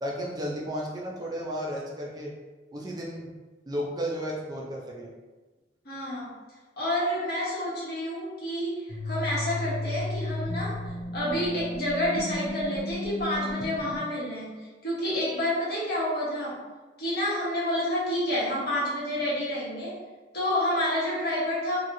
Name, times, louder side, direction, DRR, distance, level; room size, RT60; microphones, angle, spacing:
voice 1, 0.0-2.4 2.7-3.3 3.7-5.1, equal, 20° right, -2 dB, 0.4 m, -33 dB
voice 2, 5.8-6.3 6.8-10.8 11.1-16.6 17.0-20.0 20.3-21.8, left 1 dB, 60° left, -7 dB, 1.1 m, -29 dB
sound 1, 8.9-14.0, left 2 dB, 40° left, 0.6 m, -33 dB
2.8 x 2.3 x 2.6 m, 1.3 s
head